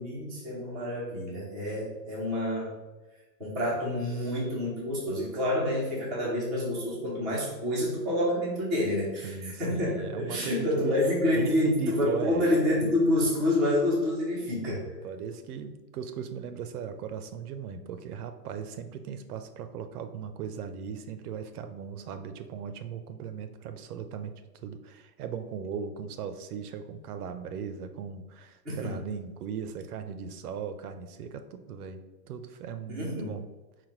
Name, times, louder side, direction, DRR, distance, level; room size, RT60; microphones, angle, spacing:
voice 1, 0.0-2.7 3.4-14.8 28.6-28.9 32.9-33.3, left 1 dB, ahead, -13 dB, 0.4 m, -28 dB
voice 2, 9.2-11.0 11.3-12.5 15.0-24.3 24.6-32.0 32.2-33.4, right 7 dB, 65° right, 9 dB, 0.6 m, -38 dB
4.1 x 2.1 x 4.5 m, 1.2 s
hypercardioid pair, 135°, 50 cm